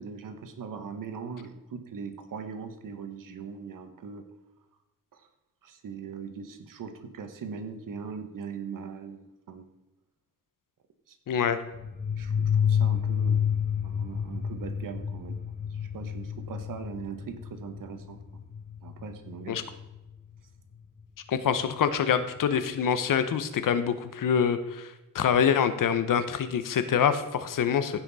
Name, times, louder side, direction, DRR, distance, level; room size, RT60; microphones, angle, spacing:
voice 1, 0.0-4.2 5.6-9.7 11.1-11.2 12.2-13.5 13.8-15.4 15.9-18.2 18.8-19.6, right 6 dB, 75° right, 8 dB, 1.3 m, -40 dB
voice 2, 11.3-11.6 19.5-19.6 21.3-28.0, left 8 dB, 75° left, 11 dB, 0.9 m, -25 dB
sound 1, 11.7-20.1, left 8 dB, 25° left, 0.5 m, -30 dB
15.0 x 5.8 x 4.1 m, 0.98 s
cardioid pair, 100°, 33 cm